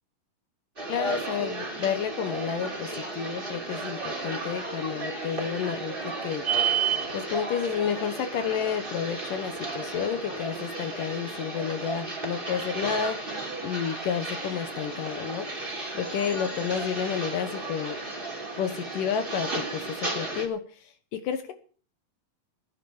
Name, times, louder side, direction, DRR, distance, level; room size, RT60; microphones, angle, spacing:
sound 1, 0.8-20.5, right 3 dB, 15° right, 3.1 m, -33 dB
voice 1, 0.9-6.4 7.1-13.2 13.6-15.5 15.9-18.0 18.6-20.6 21.1-21.5, left 7 dB, 70° left, 9 dB, 2.7 m, -30 dB
15.0 x 10.5 x 7.2 m, 0.43 s
omnidirectional pair, 4.2 m